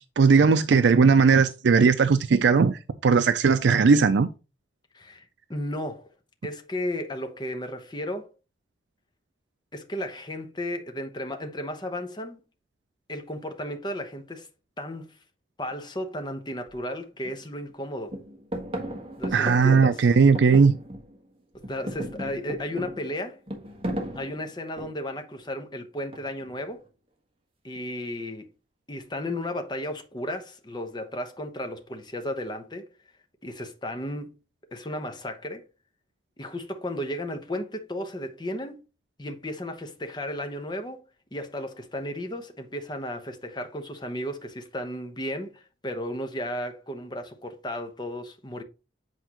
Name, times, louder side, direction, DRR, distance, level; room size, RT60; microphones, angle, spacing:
voice 1, 0.2-4.3 19.3-20.7, right 5 dB, 85° right, 0.4 m, -18 dB
voice 2, 4.9-6.1 6.4-8.3 9.7-12.4 13.1-14.5 14.8-15.1 15.6-18.1 19.2-20.1 21.5-23.4 24.1-26.8 27.6-28.4 28.9-32.9 33.4-34.3 34.7-35.7 36.4-38.8 39.2-41.0 41.3-48.6, left 1 dB, 25° left, 1.0 m, -34 dB
sound 1, 16.7-16.8 17.2-17.8 18.1-21.3 21.5-25.2 26.1-26.6, right 1 dB, 30° right, 1.4 m, -35 dB
8.2 x 4.5 x 2.9 m
head